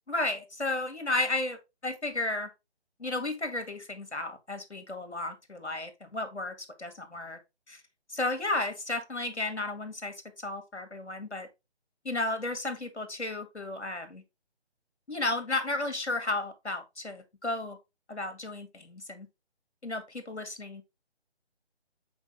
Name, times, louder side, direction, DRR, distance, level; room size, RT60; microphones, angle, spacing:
voice 1, 0.1-2.5 3.0-7.4 7.7-7.8 8.1-10.1 10.4-11.5 12.0-14.2 15.1-17.8 18.1-19.3 19.8-20.8, left 2 dB, 80° left, 2.1 m, -33 dB
6.3 x 4.9 x 3.5 m
figure-of-eight pair, 150°, 33 cm